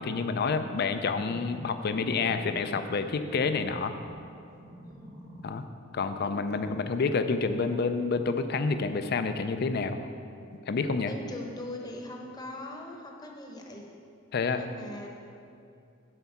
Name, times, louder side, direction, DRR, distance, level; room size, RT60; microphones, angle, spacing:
voice 1, 0.0-3.9 5.4-5.6 5.9-10.0 10.7-11.1 14.3-14.7, left 4 dB, 50° left, 9 dB, 0.4 m, -28 dB
sound 1, 1.1-4.2 4.6-5.6 6.1-6.2, equal, 50° right, 1.2 m, -47 dB
voice 2, 4.8-5.3 6.5-6.8 11.1-13.8 14.4-15.1, left 1 dB, 20° left, 1 dB, 0.9 m, -41 dB
7.8 x 4.7 x 7.1 m, 2.5 s
head